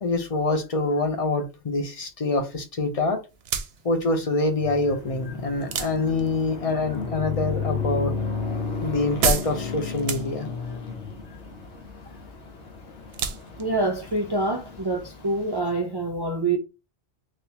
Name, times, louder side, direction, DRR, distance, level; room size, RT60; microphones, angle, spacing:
voice 1, 0.0-3.2 3.8-8.1 8.8-10.5, left 3 dB, 40° left, 0.5 m, -25 dB
sound 1, 3.3-15.3, right 6 dB, 70° right, 0.8 m, -34 dB
sound 2, 4.6-15.6, left 5 dB, 85° left, 1.0 m, -33 dB
voice 2, 13.6-16.6, right 2 dB, 40° right, 0.3 m, -26 dB
3.3 x 2.5 x 2.8 m
omnidirectional pair, 1.1 m